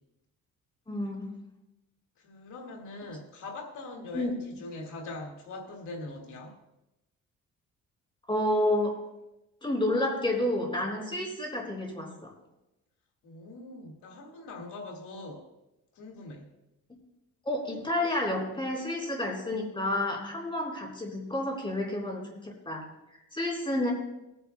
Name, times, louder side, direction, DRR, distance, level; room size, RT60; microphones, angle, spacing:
voice 1, 0.9-1.4 4.1-4.3 8.3-9.0 9.6-12.3 17.4-22.8 23.1-23.9, left 1 dB, 15° left, -1 dB, 4.2 m, -30 dB
voice 2, 2.2-6.5 13.2-15.5 15.9-16.5, left 2 dB, 80° left, 1 dB, 2.2 m, -42 dB
22.5 x 10.0 x 2.3 m, 0.95 s
cardioid pair, 90°, 30 cm